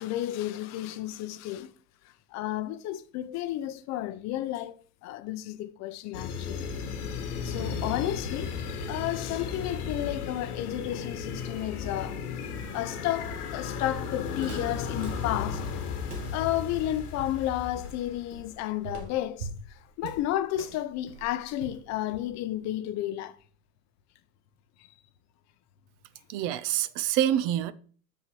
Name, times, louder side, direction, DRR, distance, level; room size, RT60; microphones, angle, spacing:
voice 1, 0.0-1.7 2.3-4.8 5.0-6.6 7.4-8.5 8.9-12.2 12.7-15.6 16.3-19.5 20.0-23.4, left 13 dB, 40° left, 0.7 m, -32 dB
sound 1, 6.1-18.5, left 6 dB, 85° left, 1.6 m, -35 dB
Walk footsteps, 13.3-22.6, right 3 dB, 90° right, 1.7 m, -44 dB
voice 2, 26.3-27.7, right 11 dB, 45° right, 0.7 m, -26 dB
7.7 x 6.7 x 3.1 m
hypercardioid pair, 115°, 44 cm